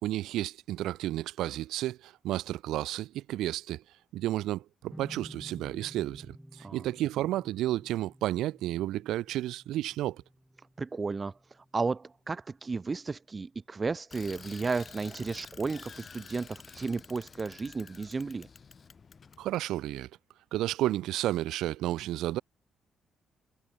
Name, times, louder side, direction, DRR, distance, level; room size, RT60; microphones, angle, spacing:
voice 1, 0.0-3.8 4.1-10.2 19.4-20.1 20.5-22.4, right 14 dB, 85° right, 2.1 m, -32 dB
sound 1, 4.9-12.1, equal, 5° right, 7.5 m, -52 dB
voice 2, 10.8-18.5, right 4 dB, 30° right, 5.8 m, -34 dB
Bicycle, 14.1-19.6, left 5 dB, 40° left, 7.2 m, -50 dB
cardioid pair, 90°, 0 cm